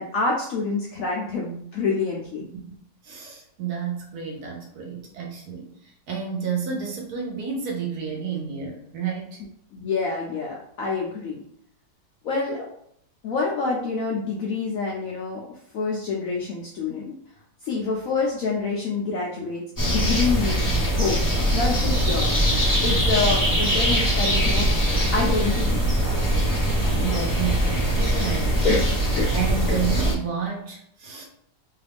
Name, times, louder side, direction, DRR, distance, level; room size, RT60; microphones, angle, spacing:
voice 1, 0.0-2.5 9.7-11.4 12.2-12.7 13.2-15.4 15.7-17.1 17.6-21.2 21.5-22.5 22.8-24.7 25.1-25.9 28.6-28.9 29.1-29.3 29.7-29.8, left 4 dB, 75° left, -2 dB, 0.8 m, -27 dB
voice 2, 3.0-9.4 26.9-28.7 29.3-31.3, right 6 dB, 65° right, -1 dB, 1.1 m, -31 dB
sound 1, 19.8-30.1, right 1 dB, 15° left, 0.6 m, -22 dB
3.0 x 2.4 x 3.4 m, 0.70 s
omnidirectional pair, 2.0 m